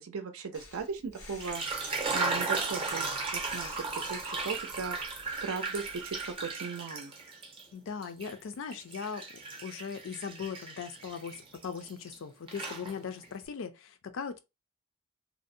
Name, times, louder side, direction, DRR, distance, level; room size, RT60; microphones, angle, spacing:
voice 1, 0.0-1.7 2.1-7.1, right 5 dB, 70° right, 0.5 m, -38 dB
Breathing, 0.5-6.5, left 2 dB, 85° left, 0.8 m, -54 dB
sound 1, 1.2-7.6 8.0-12.2 12.5-13.3, right 3 dB, 25° right, 0.5 m, -36 dB
voice 2, 7.7-9.2 9.6-14.4, left 6 dB, 60° left, 0.4 m, -39 dB
2.6 x 2.0 x 2.5 m
head